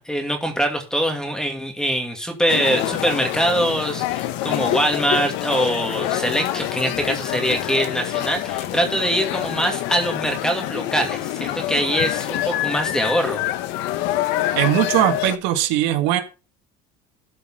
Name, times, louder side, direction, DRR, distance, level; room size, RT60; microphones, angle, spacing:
voice 1, 0.0-13.4, right 1 dB, 5° left, 5 dB, 2.3 m, -23 dB
sound 1, 2.5-15.4, left 14 dB, 75° left, 1.1 m, -26 dB
voice 2, 14.6-16.2, right 13 dB, 75° right, 7 dB, 1.7 m, -20 dB
12.5 x 5.3 x 5.6 m, 0.32 s
cardioid pair, 135°, 19 cm